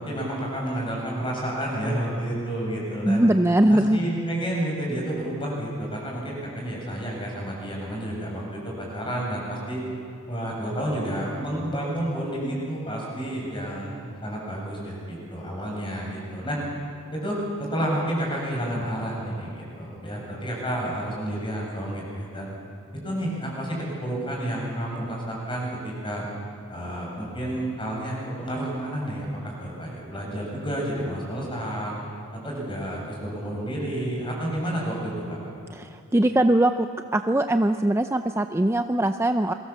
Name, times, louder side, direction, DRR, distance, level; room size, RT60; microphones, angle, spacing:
voice 1, 0.0-3.2 3.7-9.8 10.3-16.6 17.1-22.5 23.0-26.2 26.7-32.0 32.4-35.4, right 1 dB, 25° left, -2 dB, 7.8 m, -30 dB
voice 2, 3.0-4.0 35.7-36.9 37.1-39.5, right 1 dB, 10° right, 7 dB, 0.6 m, -21 dB
29.5 x 23.0 x 7.4 m, 2.6 s
head